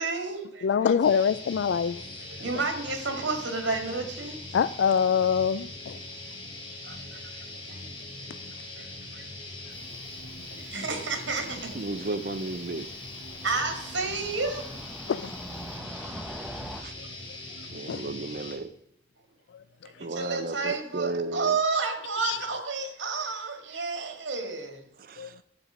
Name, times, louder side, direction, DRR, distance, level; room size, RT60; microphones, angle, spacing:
voice 1, 0.0-0.9 2.3-4.4 5.9-6.0 6.9-7.2 7.5-7.9 8.3-8.4 8.8-9.3 10.5-11.8 13.4-14.7 19.8-24.8, right 4 dB, 85° right, 2.1 m, -31 dB
voice 2, 0.6-2.0 4.5-6.0 15.1-15.3 17.9-18.0 22.2-22.4 25.2-25.3, left 7 dB, 75° left, 0.3 m, -24 dB
sound 1, 1.0-18.6, left 2 dB, 25° left, 2.8 m, -41 dB
Cricket / Motor vehicle (road), 9.7-16.8, equal, ahead, 0.8 m, -45 dB
voice 3, 11.5-12.9 16.8-16.9 17.7-18.7 20.0-21.6 25.0-25.4, right 2 dB, 50° right, 0.7 m, -34 dB
11.5 x 8.2 x 5.0 m
head